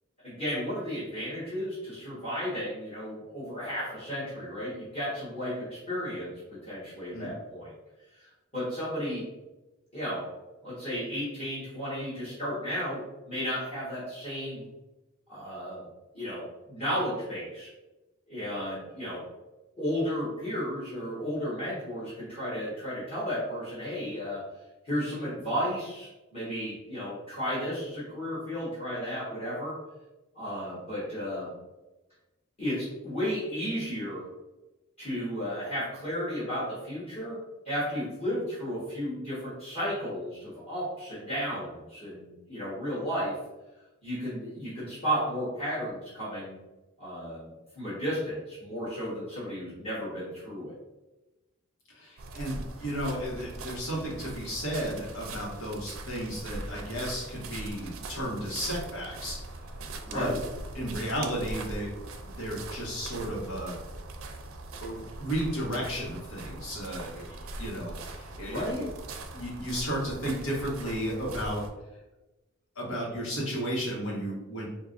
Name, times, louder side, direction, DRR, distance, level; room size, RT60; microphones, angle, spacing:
voice 1, 0.2-7.7 8.1-9.2 9.9-10.3 10.6-14.6 15.3-15.8 16.1-16.4 16.7-17.7 18.3-19.2 19.8-24.4 24.8-29.8 30.3-31.5 32.6-34.2 35.0-37.4 37.6-43.3 44.0-46.6 47.0-50.7 60.0-60.4 68.4-68.9, equal, 30° left, -10 dB, 1.4 m, -33 dB
voice 2, 51.9-59.4 60.1-60.3 60.7-61.9 62.4-63.8 64.8-68.6 69.3-71.6 72.7-74.7, equal, 90° left, -4 dB, 1.4 m, -33 dB
sound 1, 52.2-71.7, right 2 dB, 75° right, 0.5 m, -41 dB
4.6 x 2.6 x 2.5 m, 1.0 s
head